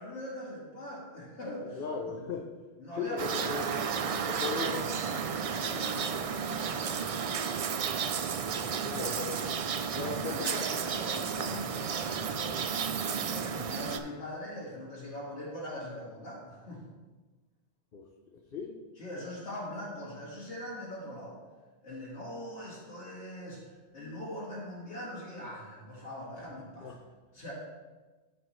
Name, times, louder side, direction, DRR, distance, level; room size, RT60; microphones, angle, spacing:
voice 1, 0.0-1.8 2.8-7.5 8.4-9.1 9.9-12.9 13.3-16.8 19.0-21.4 21.8-26.9 27.3-27.5, left 1 dB, 80° left, -7 dB, 2.3 m, -42 dB
voice 2, 1.8-2.5 3.0-3.7 4.3-4.9 8.8-9.5 10.0-10.6 17.9-18.8 26.8-27.0, left 5 dB, 55° left, 0 dB, 0.9 m, -37 dB
sound 1, 3.2-14.0, right 6 dB, 60° right, 0.3 m, -32 dB
13.5 x 5.2 x 3.1 m, 1.3 s
omnidirectional pair, 1.1 m